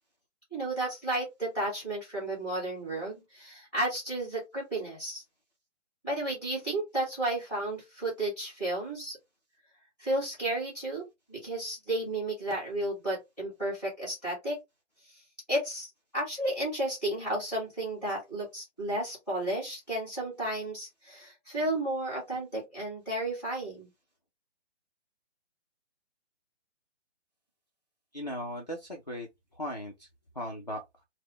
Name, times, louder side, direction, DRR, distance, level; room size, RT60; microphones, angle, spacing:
voice 1, 0.5-5.2 6.0-9.2 10.0-14.6 15.5-23.9, right 1 dB, 5° right, 1.4 m, -33 dB
voice 2, 28.1-29.3 29.6-30.1 30.4-30.8, equal, 35° left, 0.4 m, -37 dB
3.8 x 2.1 x 3.0 m
hypercardioid pair, 180°, 36 cm